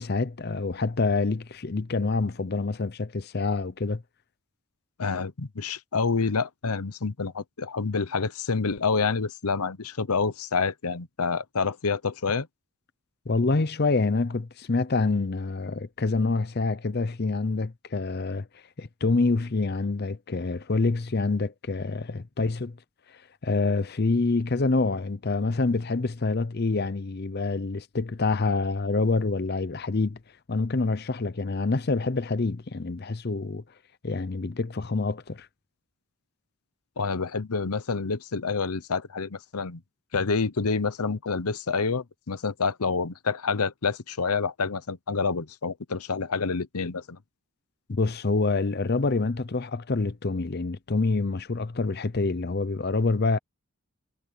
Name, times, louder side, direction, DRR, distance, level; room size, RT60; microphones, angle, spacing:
voice 1, 0.0-4.0 13.3-18.5 18.8-22.8 23.4-30.2 30.5-33.6 34.0-35.5 47.9-53.4, left 3 dB, 45° left, 0.6 m, -26 dB
voice 2, 5.0-12.5 37.0-39.8 40.1-47.2, left 4 dB, 90° left, 0.9 m, -28 dB
head